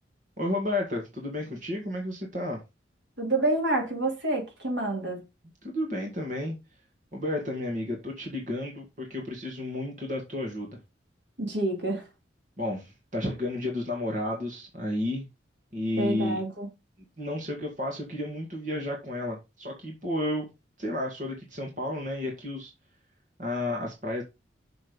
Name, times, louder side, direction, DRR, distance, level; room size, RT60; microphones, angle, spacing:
voice 1, 0.4-2.6 5.6-6.6 7.1-10.7 12.6-15.3 15.7-16.4 17.2-20.5 20.8-22.7 23.4-24.2, left 1 dB, 45° right, 2.1 m, -32 dB
voice 2, 3.2-5.2 11.4-12.1 16.0-16.7, right 2 dB, 75° right, 3.3 m, -28 dB
6.4 x 6.2 x 5.3 m
head